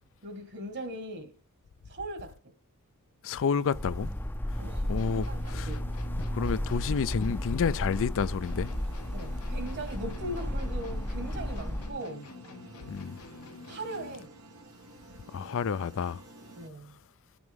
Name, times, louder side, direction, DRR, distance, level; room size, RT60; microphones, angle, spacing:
voice 1, 0.2-1.4 1.9-2.3 4.6-6.0 9.1-12.3 13.6-14.3 16.5-17.0, right 1 dB, 50° right, 1.9 m, -39 dB
voice 2, 3.2-4.1 4.9-5.7 6.3-8.7 12.9-13.2 15.3-16.2, left 6 dB, 60° left, 0.4 m, -30 dB
sound 1, 3.7-11.9, equal, 10° left, 0.5 m, -33 dB
sound 2, 5.0-14.4, left 3 dB, 85° left, 1.0 m, -48 dB
sound 3, 8.4-16.7, right 2 dB, 85° right, 1.6 m, -51 dB
13.0 x 6.2 x 3.6 m
head